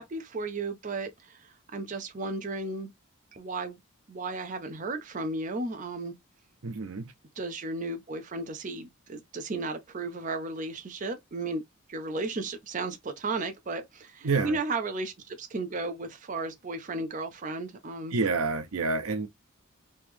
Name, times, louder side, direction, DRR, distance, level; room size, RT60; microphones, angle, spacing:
voice 1, 0.0-2.9 3.3-3.8 4.1-6.1 7.4-11.6 11.9-18.2, right 3 dB, 35° right, 0.5 m, -34 dB
voice 2, 6.6-7.1 14.2-14.6 18.1-19.3, right 4 dB, 75° right, 0.6 m, -28 dB
3.1 x 2.8 x 3.4 m
head